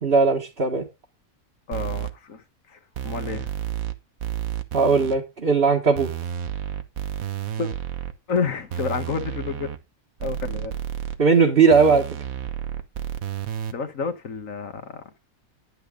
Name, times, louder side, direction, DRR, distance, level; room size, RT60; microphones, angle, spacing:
voice 1, 0.0-0.8 4.7-6.1 11.2-12.1, right 5 dB, 40° right, 1.8 m, -18 dB
voice 2, 1.7-3.5 7.6-7.7 8.3-9.7 10.2-10.8 13.7-15.2, left 5 dB, 60° left, 1.8 m, -30 dB
sound 1, 1.7-2.1 3.0-3.9 4.2-5.2 6.0-8.1 8.7-9.8 10.2-11.2 11.7-13.7, right 10 dB, 70° right, 1.4 m, -31 dB
10.0 x 9.3 x 3.8 m
omnidirectional pair, 1.5 m